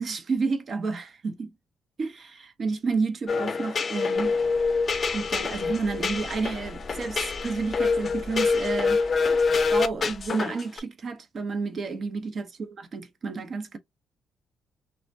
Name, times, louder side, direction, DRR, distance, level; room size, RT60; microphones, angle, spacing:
voice 1, 0.0-1.5 2.0-4.3 5.1-9.0 9.3-13.8, right 4 dB, 50° right, 0.6 m, -31 dB
sound 1, 3.3-10.8, left 4 dB, 40° left, 0.4 m, -26 dB
sound 2, 4.1-10.3, left 1 dB, 70° right, 1.0 m, -44 dB
3.3 x 2.0 x 2.6 m
cardioid pair, 90°, 0 cm